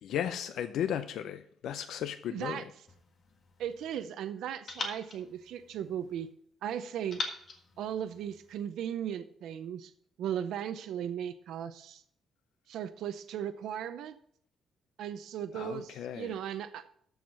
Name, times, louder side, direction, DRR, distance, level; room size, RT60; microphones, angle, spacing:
voice 1, 0.0-2.7 15.5-16.4, left 9 dB, 80° left, 0.5 m, -35 dB
voice 2, 2.3-2.6 3.6-6.3 6.6-7.2 7.8-9.9 10.2-12.0 12.7-14.2 15.0-17.0, right 9 dB, 80° right, 0.5 m, -37 dB
sound 1, 2.9-4.1 4.7-6.3 7.1-8.7, left 3 dB, 35° left, 1.5 m, -43 dB
13.5 x 4.7 x 5.6 m
cardioid pair, 160°, 0 cm